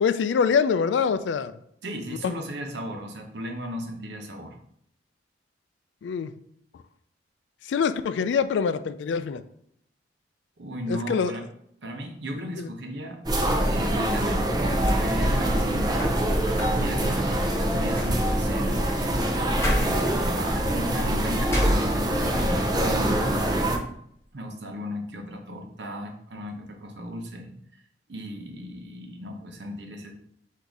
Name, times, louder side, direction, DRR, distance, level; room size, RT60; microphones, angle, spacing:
voice 1, 0.0-1.5 2.2-2.3 6.0-6.3 7.7-9.4 10.9-11.3 12.6-12.7, left 6 dB, 85° left, 12 dB, 0.3 m, -24 dB
voice 2, 1.8-4.6 10.6-11.4 11.8-13.2 13.7-14.5 14.8-16.5 16.7-18.8 19.7-23.5 24.3-27.5 28.1-30.1, equal, 75° right, 3 dB, 0.8 m, -36 dB
sound 1, 13.3-23.8, right 1 dB, 20° right, 0.6 m, -24 dB
sound 2, 14.8-22.5 22.9-23.7, equal, 15° left, 1.0 m, -33 dB
3.9 x 2.7 x 4.6 m, 0.69 s
head